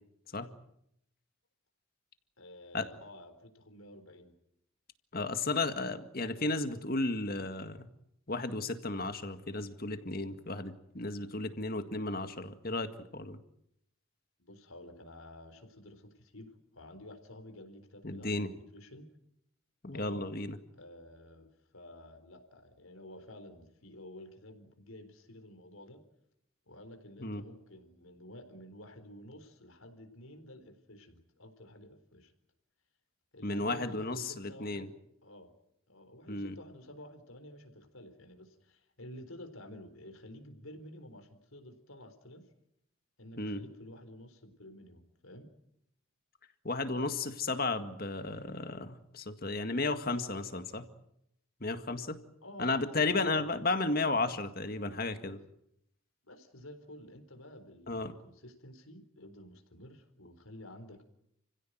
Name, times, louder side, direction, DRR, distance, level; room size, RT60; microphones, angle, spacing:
voice 1, 2.4-4.3 14.4-19.1 19.9-20.3 20.7-26.0 26.7-32.3 33.3-34.9 35.2-35.5 35.9-42.5 43.2-45.5 52.4-53.7 56.2-61.0, left 1 dB, 80° left, 8 dB, 4.1 m, -51 dB
voice 2, 5.1-7.9 8.3-13.4 18.0-18.5 19.8-20.6 27.2-27.4 33.4-34.9 36.3-36.6 43.4-43.6 46.6-50.8 51.6-52.2 52.6-55.4 57.9-58.1, left 3 dB, 45° left, 9 dB, 1.9 m, -34 dB
29.5 x 16.5 x 9.2 m, 0.77 s
head